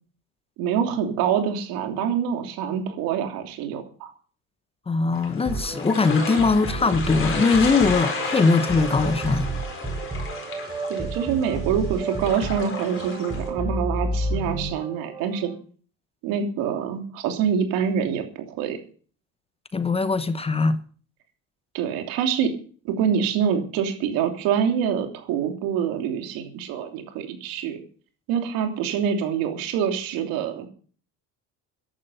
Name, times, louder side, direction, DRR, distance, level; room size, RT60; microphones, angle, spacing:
voice 1, 0.6-4.1 10.9-15.5 16.2-18.8 21.7-22.5 22.8-27.8 28.3-30.7, right 8 dB, 80° right, 3.1 m, -25 dB
voice 2, 4.9-9.5 19.7-20.8, left 4 dB, 15° left, 0.9 m, -21 dB
sound 1, 5.1-13.5, left 4 dB, 35° left, 4.6 m, -33 dB
sound 2, 5.5-15.5, right 2 dB, 15° right, 4.2 m, -31 dB
15.0 x 11.5 x 5.6 m
cardioid pair, 125°, 34 cm